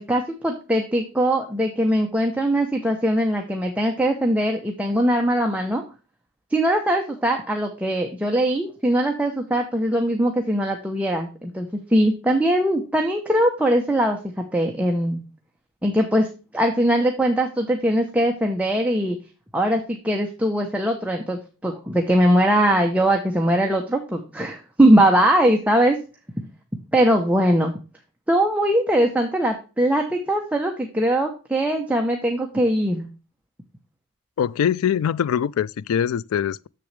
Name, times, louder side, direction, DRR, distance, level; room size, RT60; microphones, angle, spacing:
voice 1, 0.0-5.8 6.5-14.2 14.5-15.2 15.8-16.3 16.5-19.2 19.5-26.0 26.9-27.7 28.3-33.1, right 1 dB, 5° right, 0.8 m, -21 dB
voice 2, 34.4-36.7, left 8 dB, 90° left, 0.3 m, -23 dB
7.1 x 6.8 x 3.2 m
head